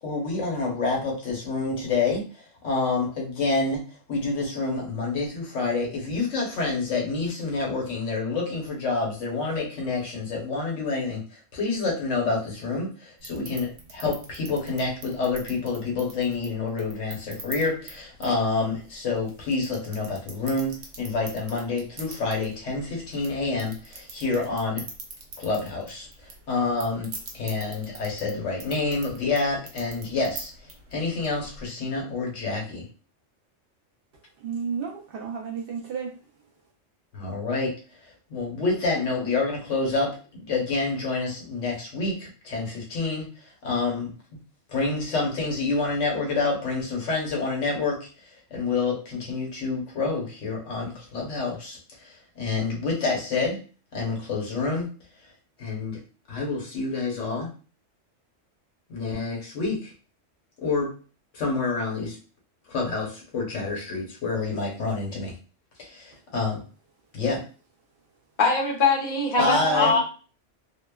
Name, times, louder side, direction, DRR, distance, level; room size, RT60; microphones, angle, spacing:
voice 1, 0.0-24.8 25.4-30.5 30.9-32.9 37.1-37.7 38.0-44.4 44.7-48.1 48.5-53.6 53.9-54.9 55.6-56.0 56.3-57.5 58.9-59.9 60.6-60.9 61.3-62.2 62.7-65.3 65.8-66.6 67.1-67.4 69.4-69.9, left 3 dB, 75° left, 1.3 m, -28 dB
sound 1, 13.2-31.7, right 3 dB, 80° right, 1.0 m, -44 dB
voice 2, 34.4-36.1 69.4-70.0, right 6 dB, 60° right, 0.7 m, -30 dB
voice 3, 68.4-70.0, left 4 dB, 45° left, 0.7 m, -22 dB
2.8 x 2.1 x 2.2 m
omnidirectional pair, 1.3 m